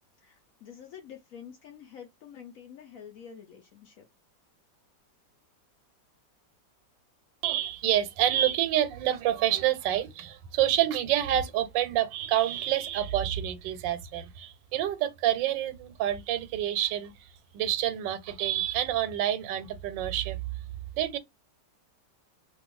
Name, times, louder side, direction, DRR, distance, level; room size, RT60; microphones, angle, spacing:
voice 1, 0.2-4.0, left 8 dB, 65° left, 0.9 m, -47 dB
voice 2, 7.4-17.1 17.5-20.4 21.0-21.2, right 12 dB, 90° right, 1.3 m, -28 dB
3.0 x 2.3 x 3.0 m
omnidirectional pair, 1.9 m